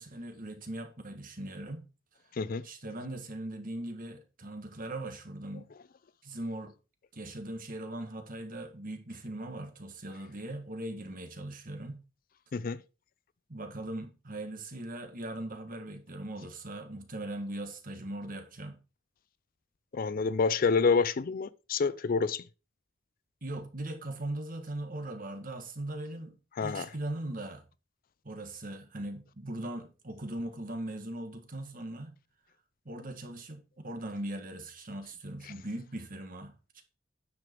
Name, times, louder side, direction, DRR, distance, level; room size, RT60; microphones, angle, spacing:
voice 1, 0.0-1.9 2.6-5.7 6.2-6.7 7.1-12.0 13.5-18.8 23.4-26.3 26.6-27.6 28.2-32.1 32.8-36.8, right 1 dB, 45° right, 1.6 m, -39 dB
voice 2, 19.9-22.4 26.6-26.9, left 5 dB, 50° left, 0.4 m, -28 dB
9.7 x 5.1 x 4.5 m
head